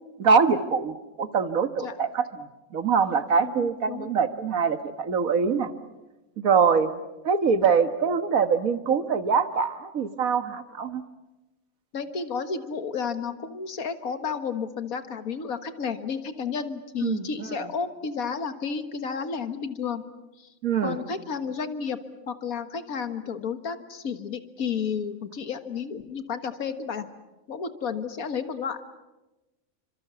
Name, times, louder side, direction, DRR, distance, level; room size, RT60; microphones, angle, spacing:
voice 1, 0.2-5.7 6.4-6.9 7.2-11.0 17.0-17.2 20.6-21.0, right 6 dB, 80° right, 10 dB, 1.9 m, -24 dB
voice 2, 3.4-4.1 11.9-20.0 20.4-20.5 20.8-22.0 22.3-27.1 27.5-28.8, left 6 dB, 85° left, 9 dB, 1.9 m, -32 dB
29.5 x 25.5 x 6.9 m, 1.1 s
omnidirectional pair, 1.4 m